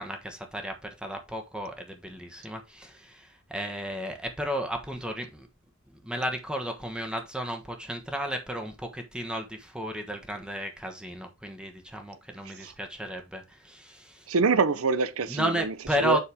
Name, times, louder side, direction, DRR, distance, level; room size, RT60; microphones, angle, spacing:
voice 1, 0.0-5.5 6.0-14.3 15.3-16.2, equal, 5° right, 1.2 m, -33 dB
voice 2, 14.3-16.2, right 4 dB, 90° right, 0.7 m, -25 dB
7.2 x 5.7 x 3.5 m
head